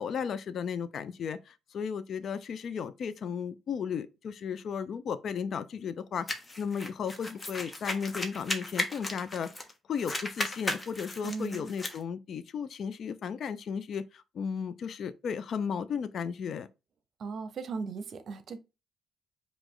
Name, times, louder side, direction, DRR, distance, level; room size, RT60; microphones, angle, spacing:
voice 1, 0.0-6.3 6.6-9.5 9.9-16.7, left 7 dB, 60° left, 0.4 m, -35 dB
sound 1, 6.3-9.7 10.0-12.0, left 1 dB, 25° left, 0.9 m, -36 dB
voice 2, 11.2-11.7 17.2-18.6, right 4 dB, 60° right, 0.7 m, -37 dB
4.9 x 2.4 x 3.7 m
cardioid pair, 90°, 0 cm